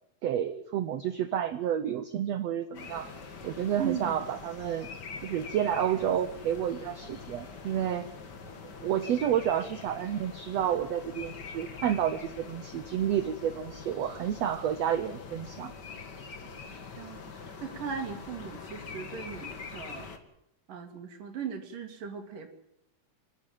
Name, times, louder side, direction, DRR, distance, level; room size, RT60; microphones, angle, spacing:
voice 1, 0.2-3.1 3.4-4.9 5.2-8.1 8.8-15.7, right 10 dB, 85° right, 12 dB, 1.4 m, -30 dB
sound 1, 2.7-20.2, left 5 dB, 40° left, 1.7 m, -44 dB
voice 2, 3.8-4.2 17.0-20.1 20.7-22.5, right 7 dB, 65° right, 5 dB, 3.9 m, -38 dB
25.5 x 11.5 x 9.1 m, 0.83 s
omnidirectional pair, 4.3 m